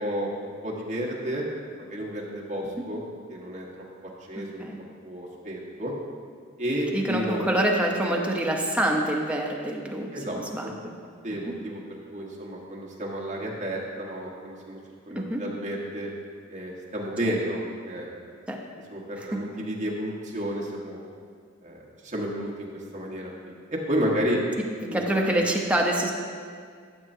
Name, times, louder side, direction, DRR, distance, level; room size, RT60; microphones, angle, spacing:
voice 1, 0.0-1.5 1.9-3.0 3.3-3.6 4.0-4.7 5.0-5.9 6.6-7.4 10.1-10.7 11.2-11.8 12.1-14.8 15.1-16.1 16.5-17.6 17.8-18.1 18.9-21.0 21.6-22.7 22.9-24.4 24.9-25.3, equal, 35° right, -3 dB, 1.4 m, -31 dB
voice 2, 6.9-10.9 15.1-15.4 18.5-18.6 19.2-19.4 24.9-26.1, right 1 dB, 5° right, 0 dB, 0.8 m, -26 dB
13.5 x 6.9 x 2.8 m, 2.1 s
head